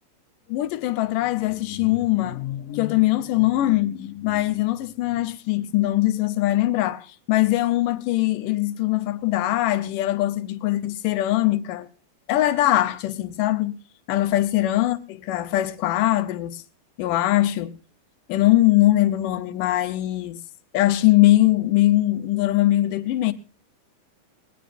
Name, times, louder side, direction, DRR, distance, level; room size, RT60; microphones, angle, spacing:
voice 1, 0.5-11.9 12.3-13.8 14.1-16.6 17.0-17.8 18.3-20.4 20.7-23.3, left 15 dB, 85° left, 2.5 m, -21 dB
19.5 x 19.0 x 2.6 m
omnidirectional pair, 3.7 m